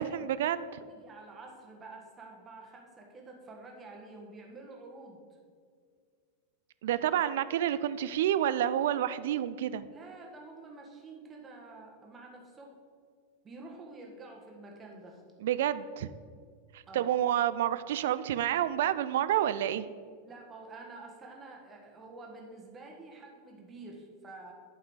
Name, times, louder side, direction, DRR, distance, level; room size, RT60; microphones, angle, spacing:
voice 1, 0.0-0.9 6.8-9.9 15.4-16.1 16.7-19.9, right 11 dB, 55° right, 14 dB, 0.3 m, -29 dB
voice 2, 0.8-5.2 9.9-12.8 13.4-15.2 16.9-17.1 20.2-24.5, right 3 dB, 20° right, 0 dB, 1.5 m, -48 dB
11.0 x 5.4 x 3.8 m, 2.1 s
figure-of-eight pair, 90°, 0 cm